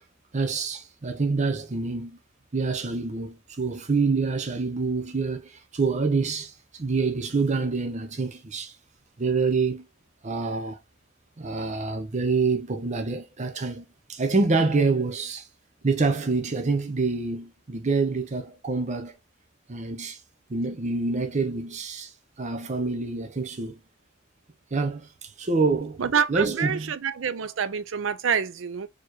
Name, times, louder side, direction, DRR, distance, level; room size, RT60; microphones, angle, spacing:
voice 1, 0.3-2.2 2.5-8.8 9.2-9.8 10.2-10.8 11.4-15.5 15.8-19.2 19.7-20.2 20.5-23.8 24.7-26.0 26.3-26.9, right 4 dB, 40° right, 0.7 m, -26 dB
voice 2, 26.0-28.9, right 7 dB, 80° right, 0.5 m, -27 dB
4.5 x 3.0 x 3.0 m
head